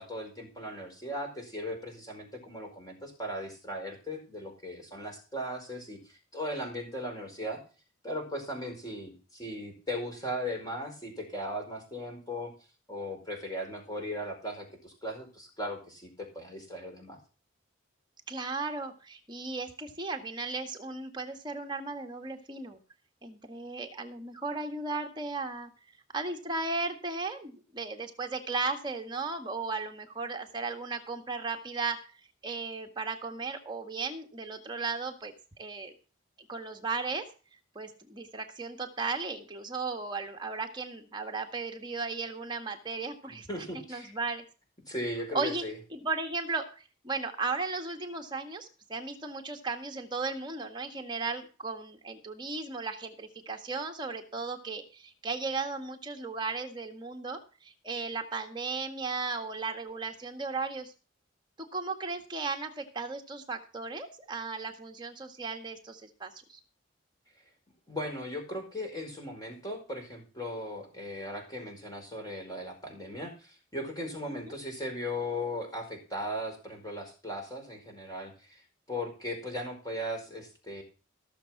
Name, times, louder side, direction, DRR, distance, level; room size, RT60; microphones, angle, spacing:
voice 1, 0.0-7.6 8.0-12.5 12.9-17.2 43.3-44.1 44.9-45.7 67.9-78.6 78.9-80.8, equal, 20° left, 2 dB, 4.8 m, -38 dB
voice 2, 18.3-22.8 23.2-25.7 26.1-32.0 32.4-35.9 36.5-37.3 37.7-43.5 43.9-44.4 45.3-45.6 45.9-60.9 61.6-66.6 74.3-74.6, right 3 dB, 25° right, 4 dB, 1.7 m, -36 dB
15.5 x 7.0 x 5.9 m, 0.35 s
head